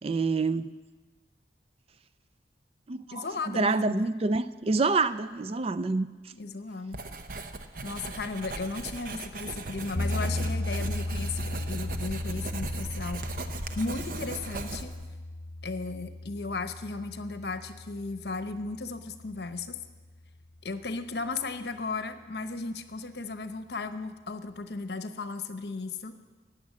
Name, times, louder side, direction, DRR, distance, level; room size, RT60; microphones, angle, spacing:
voice 1, 0.0-0.7 2.9-6.1, right 3 dB, 35° right, 14 dB, 0.4 m, -27 dB
voice 2, 3.1-4.1 6.3-7.0 7.8-13.4 13.7-14.9 15.6-19.8 20.6-26.2, left 3 dB, 65° left, 9 dB, 0.9 m, -35 dB
Writing, 6.9-15.1, right 2 dB, 50° right, 0.8 m, -38 dB
sound 1, 10.0-20.0, left 1 dB, 45° left, 1.2 m, -36 dB
15.0 x 9.3 x 7.4 m, 1.4 s
head